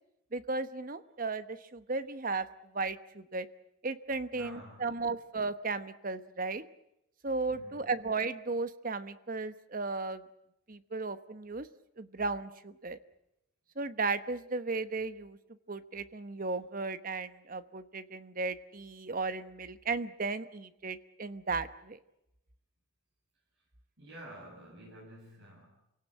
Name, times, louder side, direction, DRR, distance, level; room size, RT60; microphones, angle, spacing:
voice 1, 0.3-2.5 2.7-3.5 3.8-6.6 7.2-10.2 10.7-11.7 12.0-13.0 13.8-15.4 15.7-22.0, right 3 dB, 45° right, 12 dB, 1.1 m, -35 dB
voice 2, 4.3-5.0 7.5-7.9 24.0-25.7, right 1 dB, 60° right, -4 dB, 7.7 m, -50 dB
27.5 x 17.5 x 9.1 m, 0.87 s
head